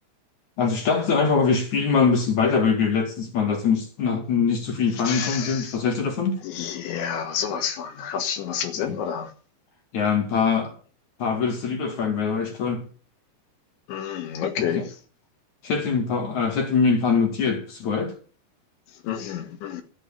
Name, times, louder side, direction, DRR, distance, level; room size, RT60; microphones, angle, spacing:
voice 1, 0.6-6.4 8.9-9.0 9.9-10.7 11.2-12.9 14.6-14.9 15.6-18.1, left 5 dB, 50° left, 3.1 m, -23 dB
voice 2, 5.0-5.8 6.4-9.3 13.9-14.9 19.0-19.8, left 8 dB, 85° left, 4.2 m, -29 dB
11.0 x 9.9 x 8.4 m
omnidirectional pair, 5.1 m